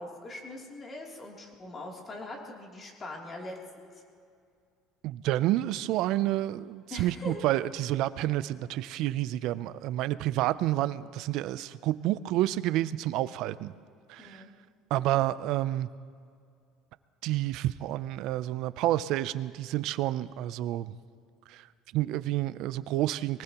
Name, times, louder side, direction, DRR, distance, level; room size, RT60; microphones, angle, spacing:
voice 1, 0.0-4.0 6.9-7.5 14.2-14.5, left 1 dB, 30° left, -1 dB, 3.1 m, -42 dB
voice 2, 5.0-13.7 14.1-14.4 14.9-15.9 17.2-20.9 21.5-21.7 21.9-23.4, right 14 dB, 70° right, 15 dB, 0.5 m, -29 dB
23.5 x 19.0 x 3.0 m, 2.3 s
supercardioid pair, 110°, 0 cm